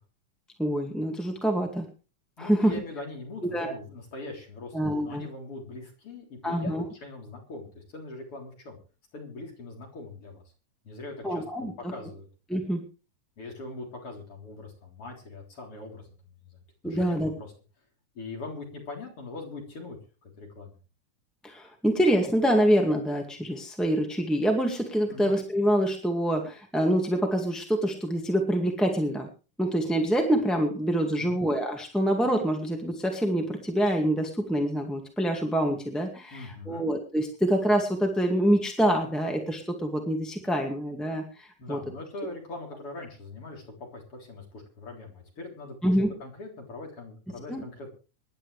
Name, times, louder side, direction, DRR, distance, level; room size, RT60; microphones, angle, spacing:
voice 1, 0.6-1.9 2.4-2.7 3.5-3.7 4.7-5.3 6.4-6.8 11.2-11.7 12.5-12.8 16.8-17.3 21.4-29.3 29.6-41.8 45.8-46.1 47.5-47.6, equal, ahead, 2 dB, 1.3 m, -26 dB
voice 2, 2.4-8.8 9.1-10.4 10.8-12.3 13.4-16.1 16.4-16.6 16.8-17.5 18.1-20.7 25.1-25.3 31.2-31.4 36.3-36.9 41.6-47.9, left 2 dB, 45° left, 1 dB, 4.5 m, -41 dB
25.0 x 11.0 x 3.3 m, 0.34 s
omnidirectional pair, 3.6 m